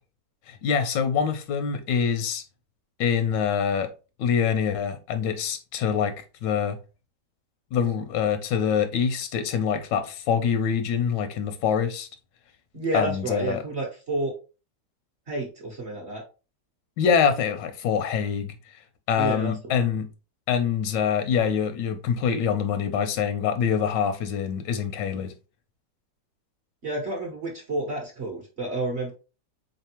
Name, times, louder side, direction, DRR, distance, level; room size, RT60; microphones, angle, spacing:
voice 1, 0.5-2.4 3.0-3.9 4.2-6.1 6.4-6.8 7.7-12.1 12.9-13.6 17.0-18.5 19.1-20.1 20.5-25.3, left 7 dB, 85° left, 1.2 m, -25 dB
voice 2, 12.7-14.3 15.3-16.2 19.2-19.8 26.8-29.1, right 2 dB, 50° right, 0.8 m, -30 dB
3.7 x 3.3 x 2.8 m
omnidirectional pair, 1.9 m